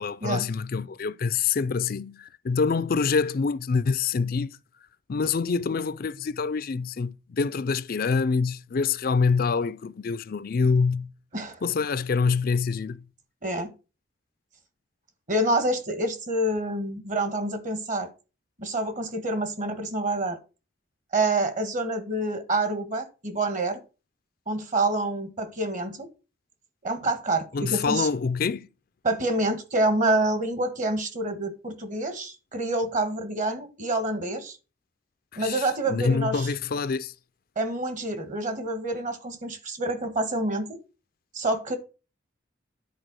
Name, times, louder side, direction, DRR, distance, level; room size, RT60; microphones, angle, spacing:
voice 1, 0.0-4.6 5.1-11.1 11.6-13.1 27.5-28.7 35.3-37.1, left 5 dB, 50° left, 0.4 m, -26 dB
voice 2, 15.3-18.1 18.6-20.4 21.1-23.8 24.5-26.1 26.8-28.1 29.0-34.6 35.4-36.5 37.6-40.8 41.3-41.8, right 2 dB, 40° right, 1.6 m, -27 dB
10.0 x 4.5 x 6.2 m
head